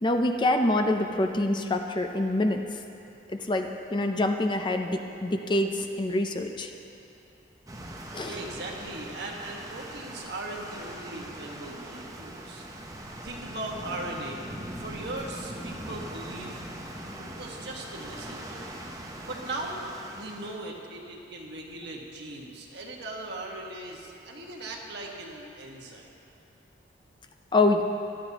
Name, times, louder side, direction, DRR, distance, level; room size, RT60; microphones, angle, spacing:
voice 1, 0.0-2.6 3.3-6.7 8.1-8.3 27.5-27.8, left 2 dB, 25° left, 5 dB, 0.5 m, -26 dB
sound 1, 7.7-20.6, right 1 dB, 20° right, 0.9 m, -41 dB
voice 2, 8.2-12.7 13.2-14.5 14.8-16.6 17.2-18.8 19.3-26.1, right 2 dB, 60° right, -2 dB, 1.6 m, -39 dB
17.5 x 12.5 x 3.0 m, 2.7 s
head